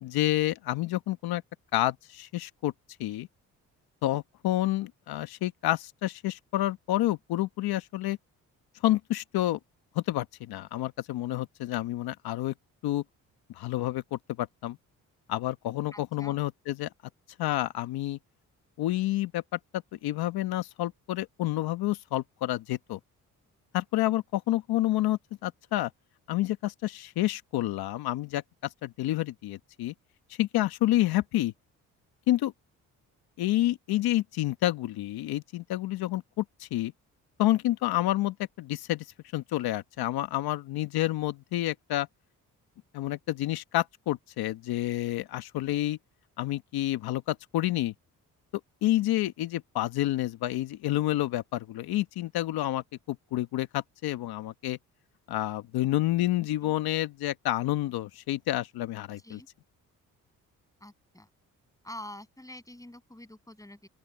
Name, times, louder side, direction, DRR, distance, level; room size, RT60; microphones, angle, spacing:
voice 1, 0.0-1.4 1.7-2.7 3.0-3.3 4.0-8.2 8.8-9.6 9.9-12.5 12.8-13.0 13.6-14.8 15.3-16.9 17.4-18.2 18.8-23.0 23.7-25.9 26.3-28.4 28.8-29.9 30.4-31.5 32.3-32.5 33.4-36.9 37.4-39.0 39.3-42.1 42.9-46.0 46.4-47.9 48.8-54.8 55.3-59.4, left 15 dB, 80° left, 1.3 m, -29 dB
voice 2, 15.9-16.4 56.6-56.8 59.2-59.5 60.8-61.3 61.8-63.9, left 1 dB, 10° left, 7.9 m, -46 dB
open air
supercardioid pair, 65°, 37 cm